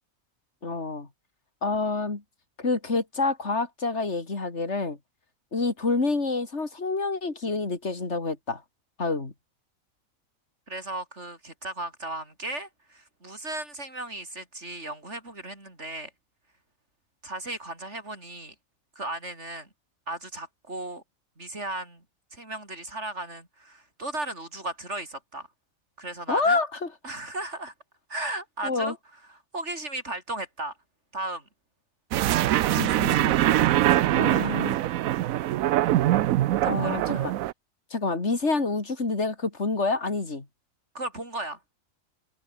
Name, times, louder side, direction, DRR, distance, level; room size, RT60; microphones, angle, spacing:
voice 1, 0.6-1.1 1.6-2.2 2.6-5.0 5.5-8.6 9.0-9.3 26.3-26.9 28.6-28.9 32.7-33.6 34.1-34.8 36.6-37.3 37.9-40.5, left 3 dB, 55° left, 3.6 m, -28 dB
voice 2, 10.7-16.1 17.2-18.6 19.0-19.7 20.1-21.0 21.4-22.0 22.3-25.5 26.0-26.6 27.0-27.7 28.1-29.0 29.5-30.7 31.1-31.4 36.6-37.3 41.0-41.6, right 2 dB, 55° right, 6.9 m, -36 dB
sound 1, 32.1-37.5, right 14 dB, 80° right, 1.1 m, -23 dB
omnidirectional pair, 1.4 m